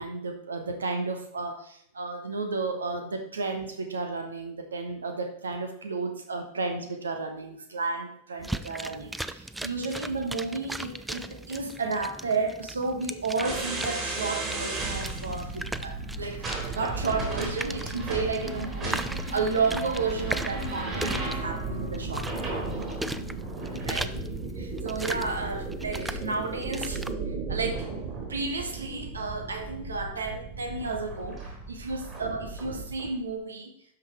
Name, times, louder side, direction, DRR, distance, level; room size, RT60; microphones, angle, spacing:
voice 1, 0.0-16.5 16.7-22.7 23.8-24.1 24.6-27.9 28.3-33.8, right 4 dB, 70° right, 6 dB, 1.4 m, -32 dB
sound 1, 8.4-27.1, right 2 dB, 5° right, 0.4 m, -38 dB
sound 2, 13.4-33.1, right 2 dB, 30° right, 3.9 m, -35 dB
12.5 x 5.5 x 4.5 m, 0.69 s
figure-of-eight pair, 90°, 0 cm